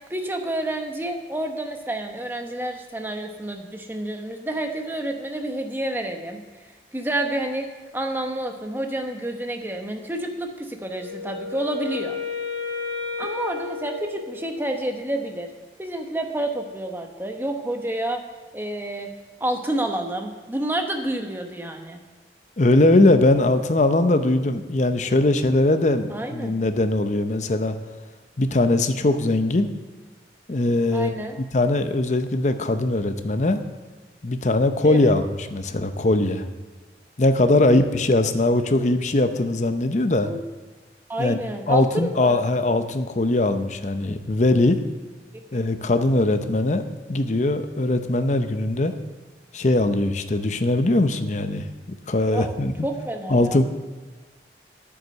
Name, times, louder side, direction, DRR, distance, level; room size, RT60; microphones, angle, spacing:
voice 1, 0.1-7.7 7.9-12.2 13.2-15.5 15.8-18.2 18.5-19.1 19.4-22.0 26.1-26.6 30.9-31.4 34.8-35.1 37.5-37.9 40.2-40.5 41.1-42.5 45.3-45.4 45.8-46.0 52.3-52.6 52.8-53.6, right 1 dB, 10° right, 4 dB, 1.0 m, -29 dB
Wind instrument woodwind instrument, 11.0-14.9, left 5 dB, 55° right, 3.9 m, -32 dB
voice 2, 22.6-27.8 28.4-29.7 30.5-31.1 31.5-33.6 34.2-35.2 35.5-36.4 37.2-40.3 41.2-41.4 41.7-44.8 45.5-46.8 47.1-48.9 49.5-51.6 52.1-52.7 53.3-53.6, left 2 dB, 40° left, 9 dB, 0.7 m, -20 dB
9.8 x 8.7 x 6.5 m, 1.3 s
head